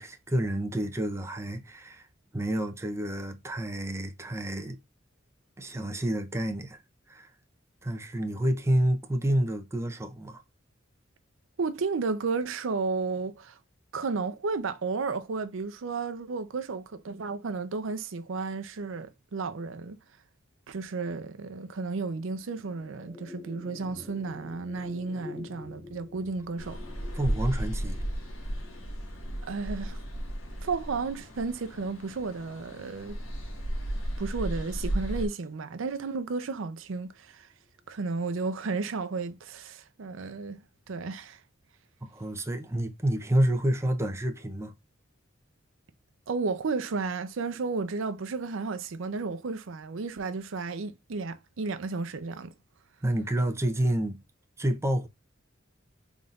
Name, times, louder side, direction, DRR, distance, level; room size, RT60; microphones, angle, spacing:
voice 1, 0.0-2.0 2.3-4.8 5.6-6.8 7.1-7.3 7.8-10.4 27.2-28.0 42.0-44.7 53.0-54.2 54.6-55.1, right 1 dB, 15° right, 0.6 m, -29 dB
voice 2, 11.6-13.6 13.9-20.0 20.7-26.8 29.5-30.0 30.6-33.2 34.2-37.5 37.9-41.4 46.3-52.5, right 4 dB, 75° right, 0.5 m, -33 dB
sound 1, 22.2-32.7, left 3 dB, 15° left, 1.7 m, -49 dB
sound 2, 26.6-35.3, right 1 dB, 90° left, 1.4 m, -34 dB
4.0 x 3.5 x 2.4 m
head